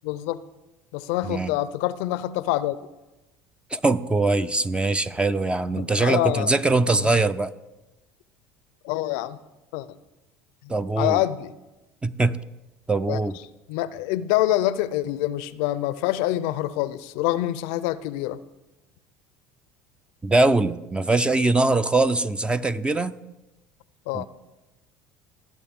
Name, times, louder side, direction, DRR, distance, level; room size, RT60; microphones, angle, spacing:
voice 1, 0.0-0.4 0.9-2.8 5.8-6.5 8.8-9.4 9.7-10.0 10.6-11.5 13.1-13.2 13.7-18.4 24.1-24.3, left 15 dB, 70° left, 17 dB, 0.5 m, -26 dB
voice 2, 3.7-7.5 10.7-11.2 12.0-12.4 12.9-13.4 20.2-23.1 24.1-24.3, right 2 dB, 15° right, 13 dB, 0.5 m, -22 dB
19.0 x 8.4 x 3.6 m, 1.0 s
hypercardioid pair, 80°, 7 cm